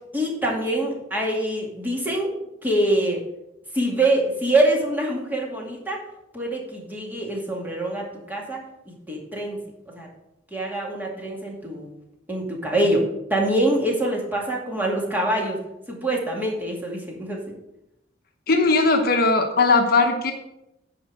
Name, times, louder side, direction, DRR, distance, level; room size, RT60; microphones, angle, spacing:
voice 1, 0.1-2.3 2.6-3.2 3.7-6.0 6.3-8.6 8.9-9.6 9.9-10.1 10.5-11.9 12.3-15.6 15.9-17.5, right 1 dB, 10° right, -2 dB, 2.3 m, -24 dB
voice 2, 18.5-20.3, left 3 dB, 50° left, 4 dB, 1.1 m, -19 dB
10.0 x 5.2 x 7.3 m, 0.85 s
head